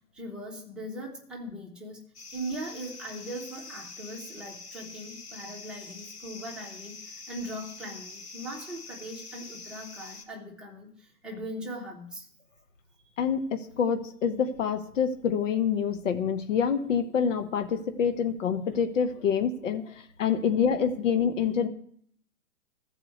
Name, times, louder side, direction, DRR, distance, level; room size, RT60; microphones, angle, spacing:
voice 1, 0.1-2.0 2.3-12.3 19.7-20.0 20.3-20.5, right 1 dB, ahead, -3 dB, 1.2 m, -40 dB
sound 1, 2.1-10.2, left 3 dB, 80° left, 2.9 m, -45 dB
voice 2, 13.2-19.8 20.2-21.7, left 7 dB, 55° left, 7 dB, 1.3 m, -26 dB
13.5 x 4.9 x 7.9 m, 0.63 s
hypercardioid pair, 160°, 44 cm